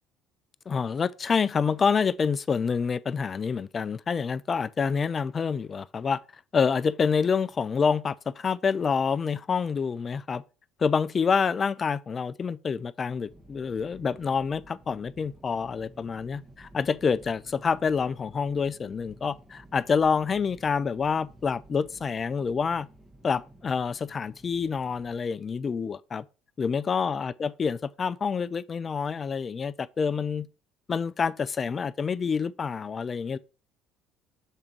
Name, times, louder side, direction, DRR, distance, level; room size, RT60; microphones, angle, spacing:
voice 1, 0.7-6.2 6.5-10.4 10.8-22.9 23.2-26.2 26.6-30.5 30.9-33.4, left 6 dB, 35° left, 0.4 m, -27 dB
sound 1, 13.3-25.2, right 1 dB, 15° right, 1.7 m, -53 dB
6.7 x 3.6 x 4.4 m
hypercardioid pair, 65°, 0 cm